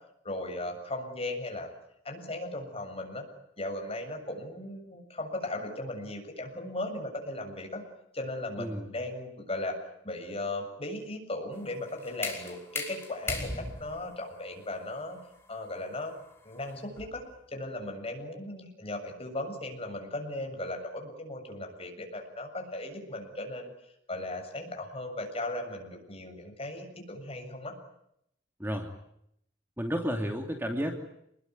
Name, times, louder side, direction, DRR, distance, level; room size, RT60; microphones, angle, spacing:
voice 1, 0.2-1.7 2.0-3.2 3.6-7.8 8.1-9.8 10.0-15.2 15.5-16.1 16.4-17.2 17.5-23.7 24.1-27.7, left 1 dB, 30° left, 4 dB, 7.5 m, -37 dB
voice 2, 8.6-8.9 28.6-28.9 29.8-30.9, equal, 10° right, 4 dB, 2.8 m, -31 dB
sound 1, 11.5-17.3, left 2 dB, 15° left, 5.6 m, -39 dB
28.5 x 21.5 x 9.6 m, 0.77 s
head